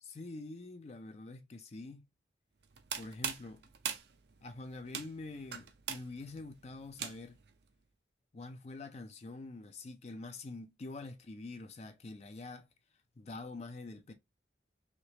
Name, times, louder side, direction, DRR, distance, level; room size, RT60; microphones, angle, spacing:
voice 1, 0.0-2.1 2.9-3.6 4.4-7.4 8.3-12.7 13.2-14.1, left 3 dB, 35° left, 0.4 m, -46 dB
sound 1, 2.6-7.5, right 8 dB, 60° right, 0.5 m, -42 dB
3.2 x 3.0 x 2.8 m
head